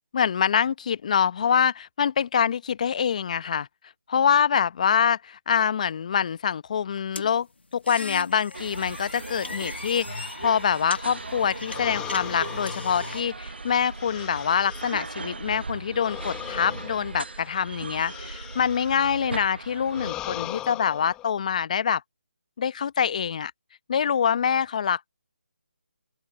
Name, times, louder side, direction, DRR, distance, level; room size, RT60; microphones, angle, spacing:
voice 1, 0.1-3.7 4.1-7.5 7.7-22.0 22.6-23.5 23.9-25.1, left 7 dB, 40° left, 1.0 m, -25 dB
sound 1, 7.2-13.2, left 3 dB, 85° left, 2.0 m, -38 dB
sound 2, 8.5-20.1, right 3 dB, 75° right, 1.2 m, -38 dB
sound 3, 11.6-15.3 15.9-19.3 19.9-21.3, left 14 dB, 10° left, 1.3 m, -39 dB
open air
figure-of-eight pair, 155°, 6 cm